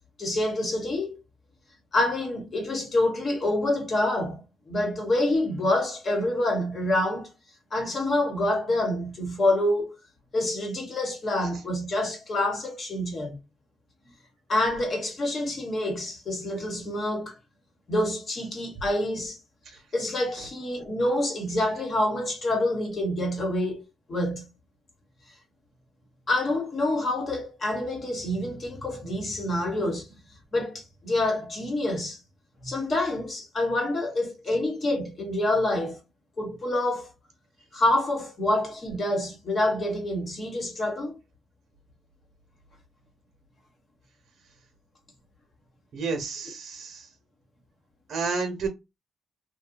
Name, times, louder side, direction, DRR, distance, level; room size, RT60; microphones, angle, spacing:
voice 1, 0.2-1.2 1.9-7.3 7.7-10.0 10.3-13.4 14.5-17.4 17.9-19.4 19.9-23.8 24.1-24.5 26.3-30.1 30.5-32.2 32.6-36.0 36.4-37.1 37.7-41.1, left 1 dB, 40° left, 1.1 m, -27 dB
voice 2, 45.9-47.1 48.1-48.7, right 4 dB, 60° right, 0.8 m, -30 dB
2.7 x 2.2 x 2.5 m
cardioid pair, 90°, 0 cm